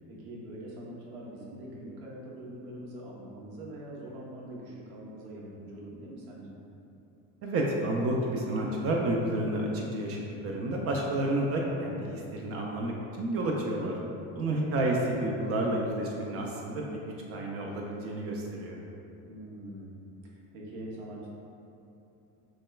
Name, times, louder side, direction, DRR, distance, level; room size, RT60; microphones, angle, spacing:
voice 1, 0.1-6.5 14.4-14.8 19.2-20.0 20.5-21.3, right 1 dB, 70° right, -4 dB, 1.0 m, -43 dB
voice 2, 7.4-14.0 14.3-17.0 17.3-18.8, right 1 dB, 40° right, -1 dB, 0.4 m, -30 dB
6.1 x 2.2 x 2.3 m, 2.8 s
cardioid pair, 125°, 38 cm